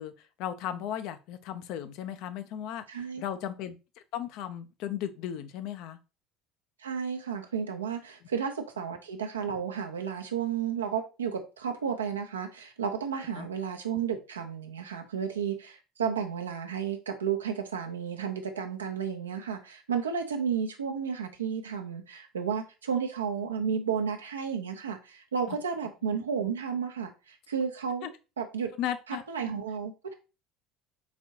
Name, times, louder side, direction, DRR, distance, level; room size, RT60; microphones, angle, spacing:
voice 1, 0.0-3.8 4.1-6.0 13.4-13.5 25.5-25.6 28.0-28.1 28.8-29.2, left 10 dB, 60° left, 0.4 m, -36 dB
voice 2, 2.9-3.2 6.8-28.1 28.4-28.7 29.1-30.1, right 7 dB, 85° right, 0.6 m, -32 dB
4.1 x 3.6 x 2.8 m
hypercardioid pair, 70°, 0 cm